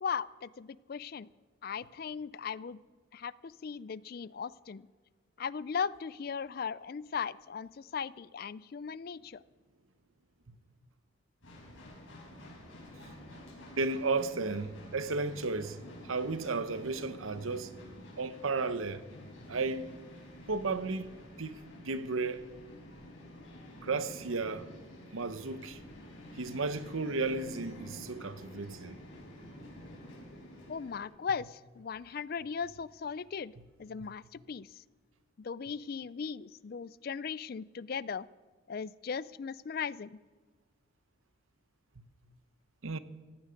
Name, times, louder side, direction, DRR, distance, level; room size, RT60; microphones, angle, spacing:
voice 1, 0.0-1.3 1.6-2.8 3.1-4.9 5.4-9.4 30.7-33.5 33.8-34.8 35.4-38.3 38.7-40.2, left 6 dB, 45° left, 0.4 m, -38 dB
sound 1, 11.4-31.0, left 1 dB, 75° left, 5.5 m, -50 dB
voice 2, 13.8-17.7 18.2-19.0 19.5-19.9 20.5-21.1 21.4-22.4 23.8-24.7 25.1-25.8 26.4-29.0 42.0-42.1 42.8-43.0, right 3 dB, 85° right, 0.9 m, -34 dB
16.5 x 16.0 x 5.2 m
head